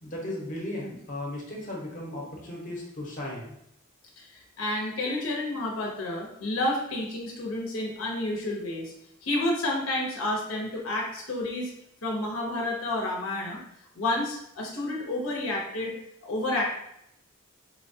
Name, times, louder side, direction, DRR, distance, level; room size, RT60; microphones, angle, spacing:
voice 1, 0.0-3.6, left 1 dB, 40° left, -2 dB, 0.9 m, -36 dB
voice 2, 4.2-8.9 9.2-11.7 12.0-13.6 13.9-16.6, left 1 dB, 80° left, -1 dB, 0.7 m, -30 dB
4.3 x 2.2 x 2.7 m, 0.75 s
head